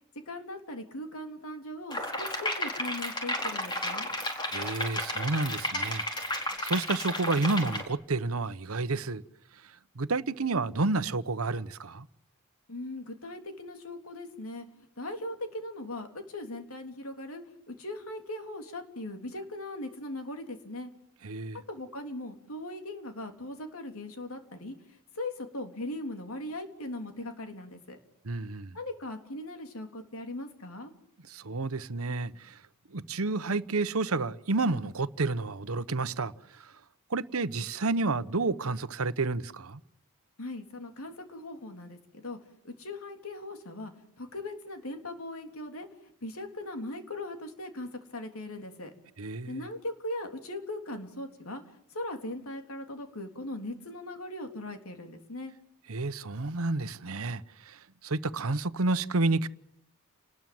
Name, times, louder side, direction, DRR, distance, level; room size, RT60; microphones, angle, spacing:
voice 1, 0.3-4.1 12.7-14.7 15.0-20.9 21.5-24.8 25.2-28.0 28.7-30.9 40.4-42.4 42.6-43.9 44.2-45.9 46.2-48.9 49.5-51.6 51.9-55.5, left 1 dB, 85° left, 3.5 m, -39 dB
sound 1, 1.9-7.8, left 1 dB, 20° left, 4.4 m, -33 dB
voice 2, 4.5-9.2 9.9-12.1 21.2-21.6 28.2-28.8 31.3-32.6 32.9-36.7 37.1-39.8 49.2-49.7 55.9-59.5, right 3 dB, 85° right, 1.0 m, -30 dB
29.5 x 20.0 x 7.8 m
head